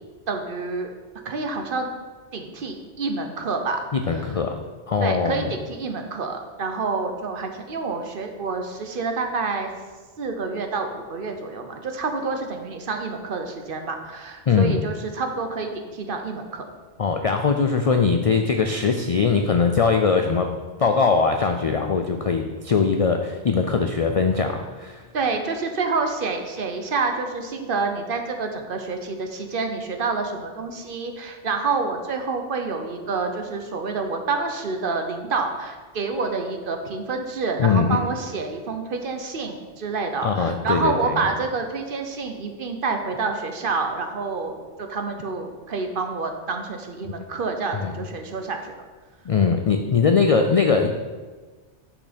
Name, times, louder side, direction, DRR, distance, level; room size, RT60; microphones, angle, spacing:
voice 1, 0.3-0.9 1.2-1.9 2.3-3.8 4.1-4.3 5.0-9.7 10.2-16.6 25.1-48.7, right 4 dB, 55° right, 5 dB, 0.9 m, -28 dB
voice 2, 3.9-4.6 4.9-5.5 14.5-14.8 17.0-20.5 20.8-25.0 37.6-38.1 40.2-41.2 47.7-48.0 49.3-50.9, left 5 dB, 55° left, 5 dB, 0.4 m, -21 dB
6.4 x 5.9 x 5.1 m, 1.4 s
omnidirectional pair, 1.1 m